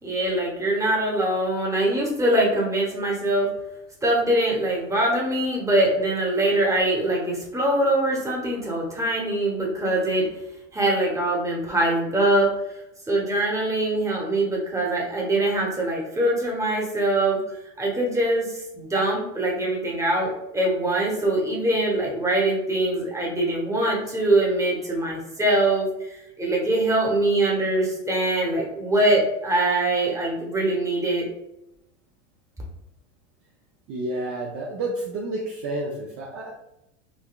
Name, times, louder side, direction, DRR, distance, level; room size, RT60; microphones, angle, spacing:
voice 1, 0.0-3.5 4.0-10.3 10.7-12.5 13.1-17.4 17.8-31.3, right 1 dB, 10° right, -2 dB, 0.9 m, -23 dB
voice 2, 33.9-36.5, right 2 dB, 35° right, -1 dB, 0.5 m, -30 dB
3.9 x 2.2 x 2.2 m, 0.86 s
hypercardioid pair, 100°, 38 cm